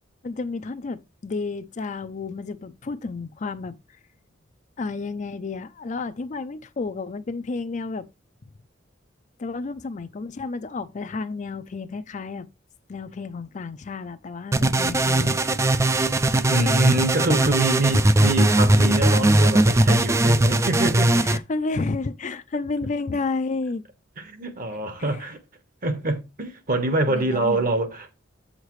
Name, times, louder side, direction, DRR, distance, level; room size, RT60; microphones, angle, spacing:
voice 1, 0.2-3.8 4.8-8.1 9.4-12.5 12.9-15.4 21.2-23.8 24.7-25.3 27.1-27.7, left 3 dB, 40° left, 0.5 m, -31 dB
sound 1, 14.5-21.4, right 1 dB, 15° right, 0.4 m, -19 dB
voice 2, 16.5-21.3 24.2-25.4 25.8-28.1, right 2 dB, 50° right, 1.2 m, -25 dB
8.2 x 6.5 x 3.1 m
head